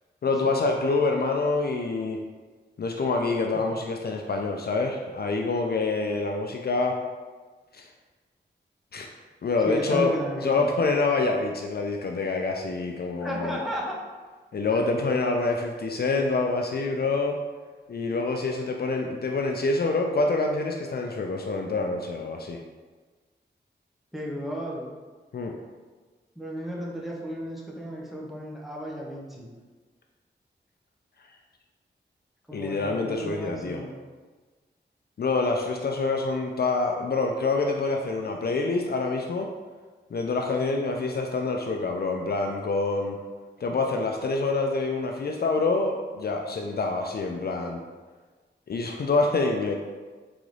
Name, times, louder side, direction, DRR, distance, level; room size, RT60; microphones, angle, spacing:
voice 1, 0.2-2.2 2.8-7.0 7.7-7.9 8.9-9.1 9.4-13.6 14.5-17.4 17.9-22.6 25.3-25.5 32.5-33.8 35.2-39.5 40.1-43.2 43.6-47.8 48.7-49.7, left 3 dB, 60° left, 2 dB, 0.4 m, -26 dB
voice 2, 9.6-10.7 13.2-14.0 14.7-14.8 24.1-24.9 26.4-29.5 32.5-33.9, equal, ahead, -4 dB, 0.9 m, -34 dB
3.9 x 3.7 x 3.2 m, 1.4 s
wide cardioid pair, 95°, 19 cm